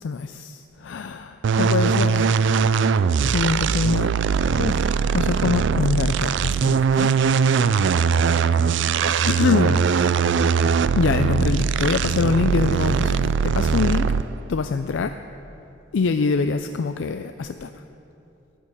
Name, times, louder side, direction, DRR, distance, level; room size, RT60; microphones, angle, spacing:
voice 1, 0.0-2.3 3.3-4.1 4.5-7.1 8.9-9.9 10.9-14.1 14.5-15.1 15.9-17.8, left 4 dB, 70° left, 8 dB, 0.4 m, -24 dB
sound 1, 1.4-14.4, right 6 dB, 65° right, 0.3 m, -21 dB
14.0 x 9.5 x 6.5 m, 2.7 s
head